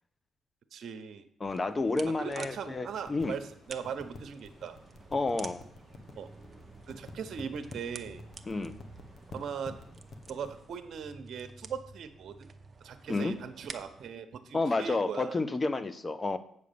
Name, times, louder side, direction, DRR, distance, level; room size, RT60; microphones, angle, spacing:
voice 1, 0.7-1.3 2.1-4.8 6.1-6.3 6.9-8.2 9.3-9.8 10.3-12.5 12.8-15.3, right 7 dB, 60° right, 8 dB, 0.9 m, -39 dB
voice 2, 1.4-3.3 5.1-5.6 8.5-8.7 13.1-13.3 14.5-16.4, left 3 dB, 25° left, 12 dB, 0.7 m, -30 dB
sound 1, 1.4-14.1, right 4 dB, 30° right, 0.7 m, -50 dB
sound 2, 2.9-10.6, left 3 dB, 45° left, 1.1 m, -51 dB
8.1 x 5.1 x 6.9 m, 0.66 s
cardioid pair, 90°, 0 cm